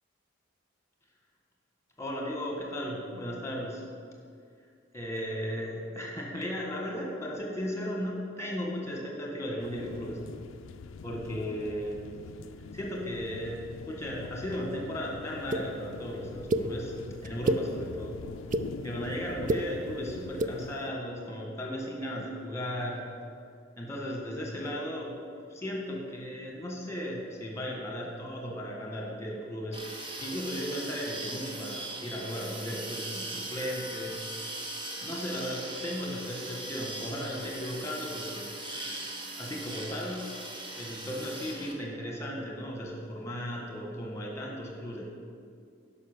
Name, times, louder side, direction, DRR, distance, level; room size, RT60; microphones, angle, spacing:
voice 1, 2.0-3.8 4.1-4.2 4.9-10.2 11.0-12.0 12.7-16.9 17.2-18.2 18.8-23.1 23.8-25.2 25.5-34.2 35.0-38.5 39.3-40.3 40.7-45.1, equal, 15° left, -1 dB, 1.6 m, -36 dB
sound 1, 9.6-20.7, left 4 dB, 75° left, 0.4 m, -44 dB
sound 2, 15.5-15.6 16.5-16.6 17.2-17.6 18.3-18.6 19.3-19.6 20.3-20.5, right 1 dB, 40° right, 0.4 m, -27 dB
sound 3, 29.7-41.7, right 2 dB, 25° right, 1.1 m, -39 dB
11.0 x 5.8 x 6.8 m, 2.2 s
head